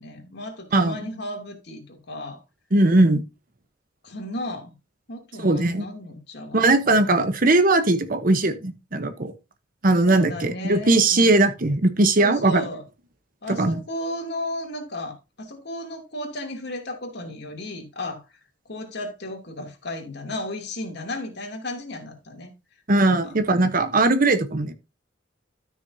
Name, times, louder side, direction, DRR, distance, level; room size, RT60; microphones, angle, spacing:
voice 1, 0.0-2.4 4.0-4.7 5.1-7.2 10.1-11.3 12.2-12.8 13.4-18.3 18.7-22.5 23.0-23.3, left 1 dB, 60° left, 2.7 m, -34 dB
voice 2, 2.7-3.2 5.4-5.8 6.5-9.3 9.8-12.6 13.6-13.8 22.9-24.7, right 2 dB, 45° right, 1.0 m, -19 dB
13.0 x 6.1 x 2.7 m
head